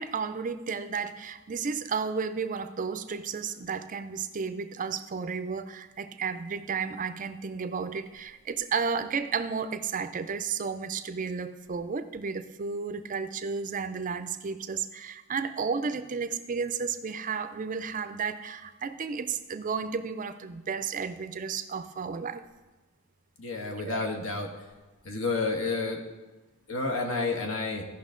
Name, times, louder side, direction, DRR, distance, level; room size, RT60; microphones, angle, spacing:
voice 1, 0.0-22.4 23.8-24.1, right 5 dB, 40° right, 11 dB, 0.4 m, -33 dB
voice 2, 23.4-24.5 25.0-26.0 26.7-27.8, left 3 dB, 70° left, 1 dB, 1.5 m, -30 dB
15.0 x 5.7 x 3.8 m, 1.2 s
head